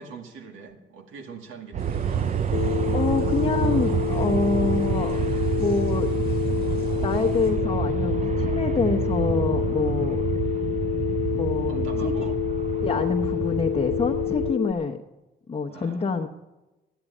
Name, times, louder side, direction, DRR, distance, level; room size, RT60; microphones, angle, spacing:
voice 1, 0.0-2.3 11.6-12.4 15.7-16.3, right 5 dB, 80° right, 4 dB, 2.1 m, -42 dB
Aircraft, 1.7-14.5, right 8 dB, 35° right, 0.5 m, -28 dB
sound 1, 1.8-7.5, right 3 dB, 55° right, 6.2 m, -52 dB
Telephone, 2.5-14.7, left 12 dB, 80° left, 0.7 m, -28 dB
voice 2, 2.9-5.2 5.6-6.1 7.0-10.2 11.3-12.3 12.8-15.0 15.5-16.3, left 4 dB, 30° left, 0 dB, 1.0 m, -26 dB
13.5 x 10.0 x 8.4 m, 1.0 s
cardioid pair, 90°, 20 cm